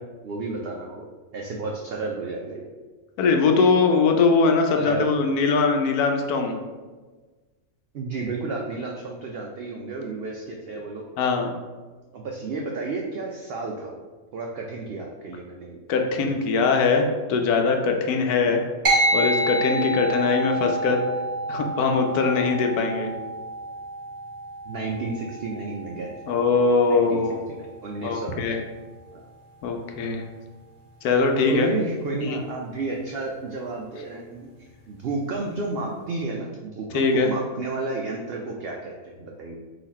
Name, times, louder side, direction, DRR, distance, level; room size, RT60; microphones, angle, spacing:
voice 1, 0.2-1.1 1.3-2.6 4.7-5.1 7.9-11.0 12.1-14.0 14.3-15.8 24.6-26.5 26.9-27.2 27.5-28.5 29.1-29.2 31.5-34.5 34.9-39.6, right 3 dB, 80° right, 0 dB, 0.5 m, -32 dB
voice 2, 3.2-6.6 11.2-11.5 15.9-18.6 19.1-21.0 21.5-23.1 26.3-27.4 28.0-28.6 29.6-30.3 31.0-31.7 32.2-32.4 36.9-37.3, left 4 dB, 85° left, 3 dB, 1.1 m, -21 dB
sound 1, 18.9-28.6, right 2 dB, 40° right, 1.0 m, -29 dB
4.0 x 2.9 x 4.1 m, 1.3 s
omnidirectional pair, 1.6 m